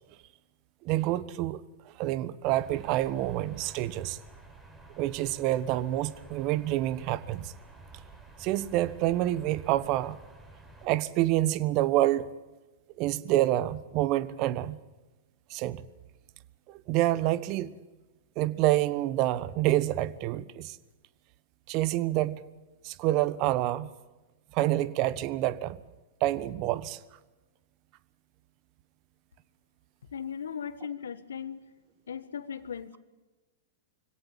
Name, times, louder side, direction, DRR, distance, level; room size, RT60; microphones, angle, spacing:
voice 1, 0.8-1.6 2.0-4.2 5.0-7.5 8.4-10.2 10.8-12.3 13.0-14.8 15.5-15.8 16.7-17.8 18.4-20.8 21.7-22.4 22.8-23.9 24.5-25.8 26.2-27.0, right 15 dB, 45° right, 17 dB, 1.2 m, -27 dB
sound 1, 2.4-10.9, right 2 dB, 20° right, 6.9 m, -51 dB
voice 2, 30.1-31.7 32.1-33.0, left 7 dB, 75° left, 13 dB, 1.5 m, -38 dB
25.0 x 17.5 x 7.3 m, 1.2 s
hypercardioid pair, 105°, 0 cm